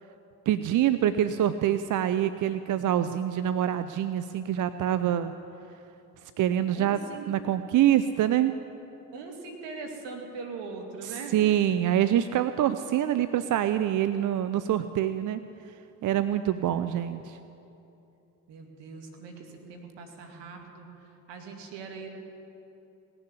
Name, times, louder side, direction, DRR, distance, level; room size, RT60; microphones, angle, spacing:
voice 1, 0.5-5.3 6.4-7.0 7.3-8.6 11.0-15.4 16.0-17.4, right 11 dB, 45° right, 12 dB, 0.6 m, -25 dB
voice 2, 6.7-7.3 9.1-11.3 18.5-20.9 21.3-22.2, right 4 dB, 65° right, 2 dB, 2.4 m, -41 dB
18.0 x 6.9 x 9.8 m, 2.8 s
hypercardioid pair, 55°, 45 cm